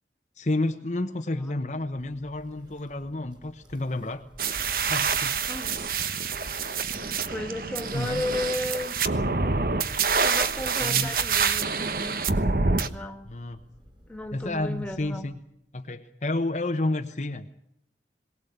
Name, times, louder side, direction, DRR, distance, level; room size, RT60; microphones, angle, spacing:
voice 1, 0.4-4.2 4.8-5.4 7.9-8.2 10.8-11.1 13.3-13.6 14.3-15.3 15.7-17.5, left 2 dB, 40° left, 5 dB, 1.0 m, -30 dB
Thunder, 1.7-15.4, equal, 25° right, 3.7 m, -49 dB
sound 1, 4.4-12.9, right 5 dB, 55° right, 1.1 m, -26 dB
voice 2, 5.5-5.9 7.0-9.0 10.2-12.2 12.7-13.3 14.1-15.3, left 1 dB, 5° left, 5 dB, 2.0 m, -34 dB
22.5 x 18.0 x 8.1 m, 0.77 s
head